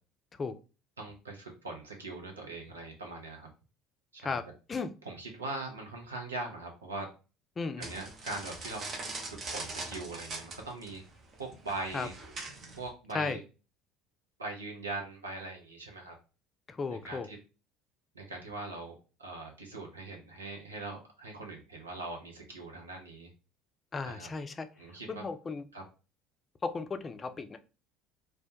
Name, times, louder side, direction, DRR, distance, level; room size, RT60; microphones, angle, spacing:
voice 1, 1.0-3.5 4.1-4.4 5.0-7.1 7.8-8.9 9.3-11.0 11.4-12.1 12.8-13.4 14.4-16.1 16.9-17.4 18.1-18.9 19.2-23.3 24.0-24.3 24.8-25.2 25.7-25.8, right 2 dB, 85° right, 1 dB, 0.6 m, -41 dB
voice 2, 7.6-7.9 11.9-12.1 13.1-13.4 16.8-17.3 23.9-24.7 25.1-25.7 26.6-27.6, left 4 dB, 30° left, 9 dB, 0.3 m, -35 dB
sound 1, 7.8-12.9, right 3 dB, 40° right, 0.7 m, -42 dB
2.1 x 2.1 x 2.8 m, 0.33 s
figure-of-eight pair, 65°, 0 cm